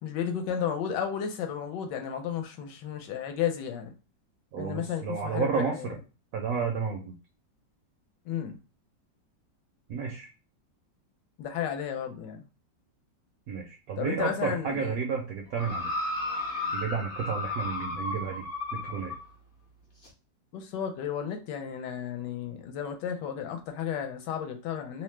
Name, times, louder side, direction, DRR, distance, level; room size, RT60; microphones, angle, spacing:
voice 1, 0.0-3.9 4.6-6.0 8.3-8.6 11.4-12.4 14.0-14.9 20.5-25.0, left 8 dB, 75° left, 1.2 m, -33 dB
voice 2, 4.5-5.9 6.3-7.1 9.9-10.3 13.5-15.9 16.7-18.4 18.7-19.1, right 6 dB, 75° right, 0.8 m, -31 dB
sound 1, 15.6-19.2 20.0-20.1, left 2 dB, 50° left, 0.6 m, -33 dB
3.0 x 2.0 x 3.1 m
omnidirectional pair, 2.0 m